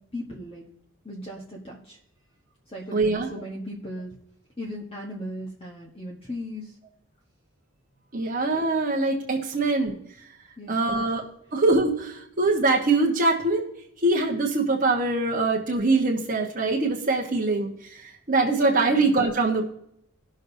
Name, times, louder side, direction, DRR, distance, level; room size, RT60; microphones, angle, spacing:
voice 1, 0.1-0.6 1.0-2.0 2.7-4.1 4.6-6.8 10.6-11.0 18.9-19.0, left 1 dB, 25° left, -2 dB, 1.2 m, -37 dB
voice 2, 2.9-3.3 8.1-10.0 10.7-11.2 11.5-13.6 14.0-19.6, right 3 dB, 35° right, -1 dB, 1.2 m, -23 dB
19.0 x 6.4 x 2.7 m, 0.75 s
head